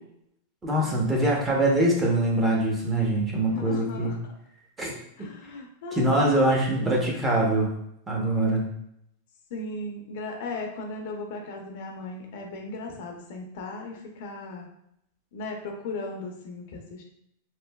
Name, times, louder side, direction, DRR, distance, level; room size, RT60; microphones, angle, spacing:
voice 1, 0.6-4.2 4.8-4.9 5.9-7.7 8.1-8.6, right 1 dB, 15° right, -2 dB, 0.7 m, -23 dB
voice 2, 3.5-4.2 5.2-6.4 9.5-14.7 15.3-17.0, left 2 dB, 65° left, 2 dB, 0.6 m, -37 dB
3.1 x 2.4 x 2.2 m, 0.76 s
supercardioid pair, 140°, 0 cm